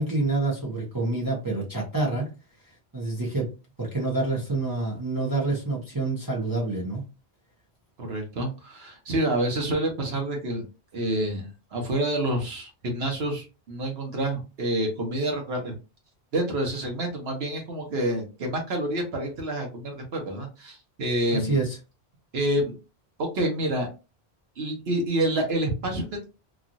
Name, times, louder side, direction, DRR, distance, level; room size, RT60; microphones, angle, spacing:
voice 1, 0.0-2.3 2.9-3.5 3.8-7.0 21.3-21.8, right 2 dB, 20° right, -4 dB, 0.8 m, -27 dB
voice 2, 8.0-10.7 10.9-15.7 16.3-21.5 22.3-22.7 23.2-23.9 24.6-26.2, right 1 dB, 75° right, 2 dB, 1.1 m, -28 dB
3.0 x 2.4 x 2.5 m, 0.30 s
omnidirectional pair, 1.1 m